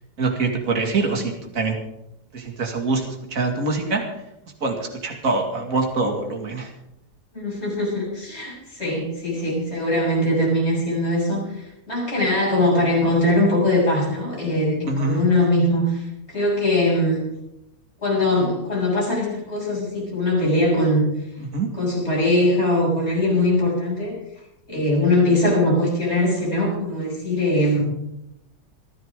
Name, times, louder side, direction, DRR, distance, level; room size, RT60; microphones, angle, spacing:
voice 1, 0.2-1.7 2.3-3.0 3.3-4.0 4.6-6.7 14.8-15.3 21.5-21.7, right 3 dB, 50° right, 2 dB, 2.7 m, -24 dB
voice 2, 7.3-17.3 18.0-21.0 21.7-24.2 24.7-27.8, left 1 dB, 35° left, -4 dB, 7.6 m, -21 dB
28.5 x 10.0 x 3.8 m, 0.84 s
omnidirectional pair, 1.9 m